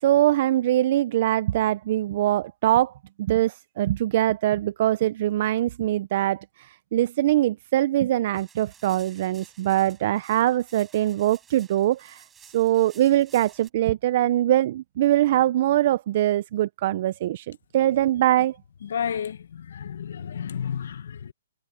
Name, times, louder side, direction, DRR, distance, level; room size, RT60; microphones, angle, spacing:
voice 1, 0.0-2.9 3.2-12.2 12.5-18.6, right 13 dB, 45° right, 0.5 m, -23 dB
sound 1, 8.3-13.7, right 7 dB, 10° right, 5.2 m, -53 dB
voice 2, 18.8-21.3, left 8 dB, 70° left, 1.3 m, -31 dB
hypercardioid pair, 155°, 0 cm